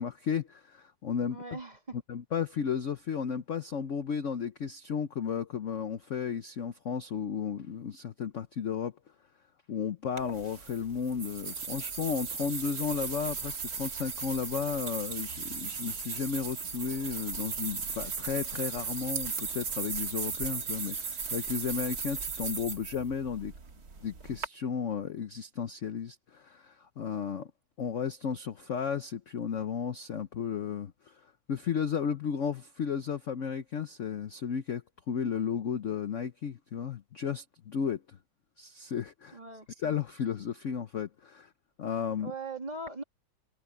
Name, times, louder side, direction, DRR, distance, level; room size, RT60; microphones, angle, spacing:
voice 1, 0.0-1.4 2.1-8.9 9.7-23.5 24.0-27.5 27.8-31.1 31.5-38.2 38.6-39.4 39.8-41.5 41.8-42.3, left 7 dB, 55° left, 1.0 m, -34 dB
voice 2, 1.3-2.0 39.3-39.7 42.2-43.0, right 3 dB, 20° right, 2.4 m, -40 dB
sound 1, 10.2-24.5, right 5 dB, 50° right, 2.3 m, -37 dB
omnidirectional pair, 2.1 m